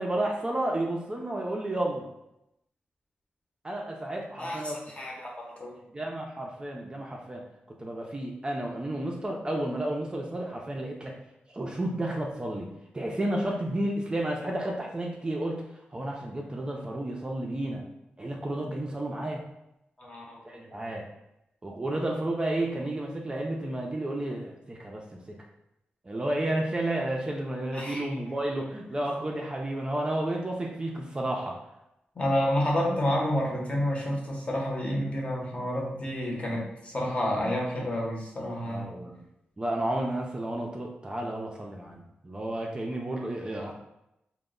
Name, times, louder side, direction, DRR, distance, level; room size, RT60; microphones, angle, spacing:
voice 1, 0.0-2.1 3.6-4.8 5.9-11.1 11.5-15.6 15.9-17.8 18.2-19.4 20.4-21.1 21.6-25.4 26.1-31.6 38.6-39.2 39.6-43.7, right 1 dB, 25° right, 0 dB, 0.4 m, -32 dB
voice 2, 5.0-5.7 20.0-20.6 27.7-28.1 32.2-38.9, equal, 35° left, -2 dB, 0.7 m, -29 dB
2.1 x 2.0 x 3.6 m, 0.86 s
wide cardioid pair, 90°, 4 cm